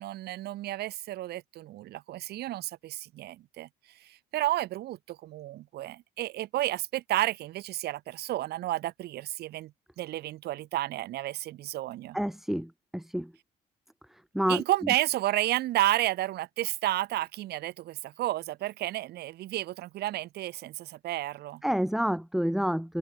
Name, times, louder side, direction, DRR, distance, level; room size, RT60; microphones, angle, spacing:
voice 1, 0.0-3.7 4.0-9.7 10.0-12.2 14.5-21.6, right 15 dB, 70° right, 1.7 m, -31 dB
voice 2, 12.1-13.3 14.3-14.6 21.6-23.0, equal, ahead, 1.7 m, -28 dB
cardioid pair, 110°, 17 cm